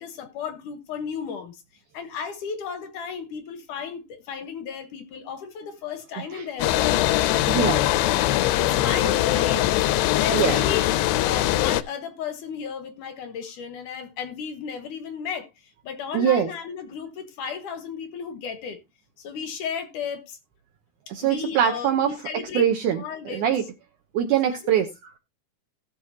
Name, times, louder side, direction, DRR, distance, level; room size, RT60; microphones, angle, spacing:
voice 1, 0.0-1.6 1.9-7.5 8.5-9.7 10.1-18.8 19.2-20.4 21.2-22.7 22.9-23.5 24.5-24.7, left 6 dB, 70° left, 2.1 m, -34 dB
sound 1, 6.6-11.8, left 15 dB, 85° left, 2.8 m, -22 dB
voice 2, 7.5-7.8 10.3-10.6 16.1-16.5 21.1-23.6 24.1-25.1, right 9 dB, 80° right, 1.8 m, -23 dB
17.5 x 6.1 x 2.8 m
omnidirectional pair, 4.7 m